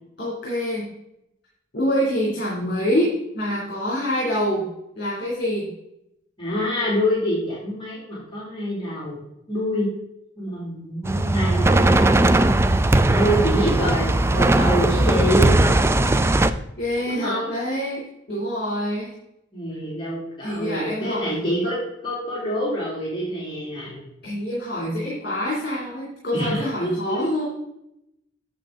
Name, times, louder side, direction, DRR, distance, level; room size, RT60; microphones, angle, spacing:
voice 1, 0.2-0.9 1.7-4.7 4.9-5.7 16.8-19.2 20.4-21.2 24.2-27.4, equal, 55° left, -5 dB, 2.9 m, -26 dB
voice 2, 6.4-9.2 9.5-9.9 10.4-12.0 13.1-15.5 17.1-17.5 19.5-24.0 26.3-27.3, equal, 25° left, -8 dB, 3.1 m, -26 dB
sound 1, 11.0-16.5, right 2 dB, 15° right, 0.4 m, -18 dB
8.3 x 7.3 x 3.8 m, 0.81 s
head